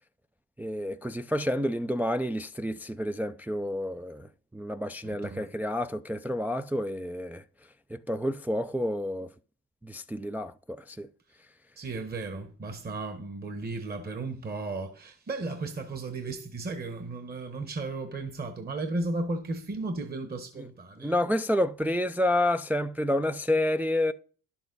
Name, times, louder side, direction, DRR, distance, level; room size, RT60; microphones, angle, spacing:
voice 1, 0.6-4.3 4.5-7.4 7.9-9.3 9.8-11.1 21.0-24.1, left 1 dB, 5° right, 0.3 m, -29 dB
voice 2, 5.0-5.5 11.8-21.1, right 2 dB, 25° right, 1.1 m, -35 dB
10.5 x 7.1 x 4.0 m
cardioid pair, 90°, 35 cm